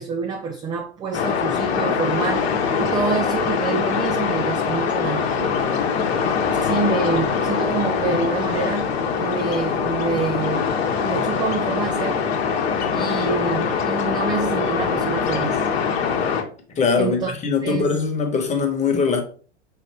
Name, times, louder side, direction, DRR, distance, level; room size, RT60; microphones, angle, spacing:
voice 1, 0.0-5.6 6.6-8.9 9.2-10.6 11.0-12.3 12.9-15.6 17.0-17.3 17.6-18.0, right 5 dB, 15° right, 0.3 m, -27 dB
sound 1, 1.1-16.4, left 6 dB, 65° left, 1.0 m, -23 dB
voice 2, 16.8-19.2, left 5 dB, 20° left, 1.1 m, -21 dB
5.5 x 2.5 x 3.4 m
hypercardioid pair, 100°, 34 cm